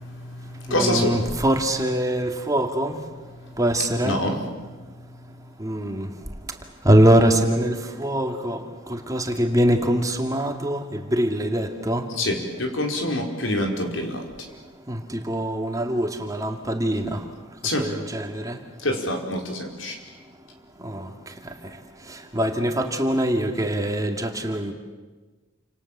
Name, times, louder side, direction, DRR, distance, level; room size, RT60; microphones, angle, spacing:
voice 1, 0.0-1.3 3.4-3.6 4.0-5.3 12.1-14.2 17.6-17.9 18.8-20.0, left 1 dB, 75° left, 3 dB, 4.9 m, -27 dB
voice 2, 0.7-3.0 3.6-4.2 5.6-6.1 6.8-8.6 8.9-12.0 14.9-15.0 15.3-17.2 17.8-18.6 20.8-21.0 22.3-24.7, right 1 dB, 15° right, 4 dB, 2.3 m, -23 dB
29.0 x 27.5 x 7.5 m, 1.3 s
head